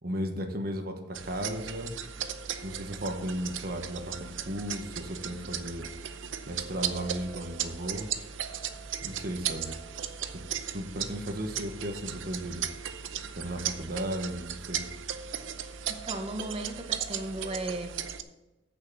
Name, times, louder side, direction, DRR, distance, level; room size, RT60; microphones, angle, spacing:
voice 1, 0.0-1.9 2.6-5.9 6.5-8.1 9.0-9.8 10.3-10.4 10.7-12.7 13.3-14.9, equal, 50° right, 4 dB, 1.2 m, -35 dB
sound 1, 1.1-18.2, right 9 dB, 85° right, 0.7 m, -37 dB
voice 2, 15.9-18.0, right 2 dB, 30° right, 6 dB, 1.0 m, -36 dB
8.4 x 6.6 x 6.2 m, 1.0 s
head